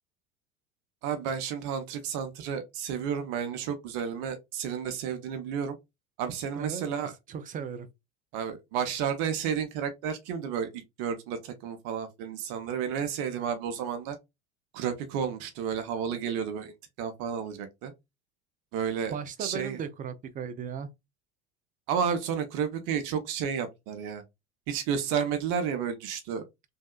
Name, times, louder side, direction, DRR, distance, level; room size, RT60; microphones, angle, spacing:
voice 1, 1.0-5.8 6.2-7.1 8.3-10.7 11.0-14.2 14.7-16.7 17.0-17.9 18.7-19.8 21.9-24.2 24.7-26.4, right 7 dB, 50° right, 0.8 m, -31 dB
voice 2, 6.6-7.9 19.1-20.9, right 7 dB, 20° right, 0.4 m, -37 dB
3.2 x 2.6 x 2.3 m
hypercardioid pair, 85°, 42 cm